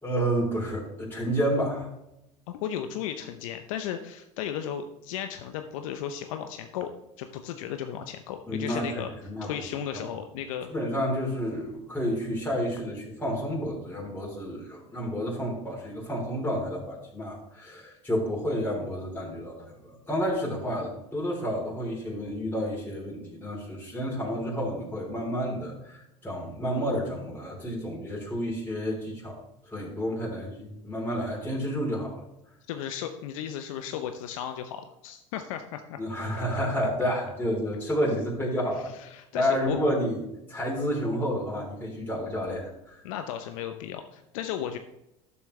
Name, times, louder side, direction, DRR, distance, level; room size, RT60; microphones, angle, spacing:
voice 1, 0.0-1.9 8.5-9.5 9.9-10.0 10.7-29.4 29.7-32.2 36.0-38.9 39.3-40.2 40.5-43.0, equal, 10° left, -5 dB, 3.4 m, -30 dB
voice 2, 2.5-6.9 7.2-9.1 9.4-10.7 32.7-36.0 39.0-39.8 43.0-44.8, left 9 dB, 75° left, 7 dB, 0.7 m, -35 dB
12.0 x 7.2 x 3.2 m, 0.86 s
hypercardioid pair, 80°, 17 cm